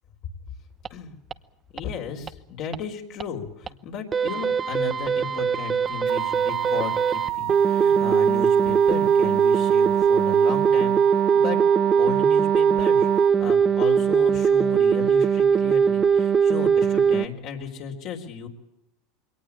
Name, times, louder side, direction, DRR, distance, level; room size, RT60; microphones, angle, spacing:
sound 1, 0.9-1.0 1.3-1.4 1.8-1.9 2.3-2.4 2.7-2.8 3.2-3.3 3.7-3.8 4.1-17.3, right 6 dB, 25° right, 0.9 m, -20 dB
voice 1, 1.7-11.0 11.3-11.6 12.0-13.1 13.4-18.5, left 7 dB, 55° left, 1 dB, 4.2 m, -34 dB
sound 2, 6.1-13.3, right 15 dB, 55° right, 1.1 m, -29 dB
22.0 x 18.5 x 8.5 m, 0.87 s
supercardioid pair, 115°, 0 cm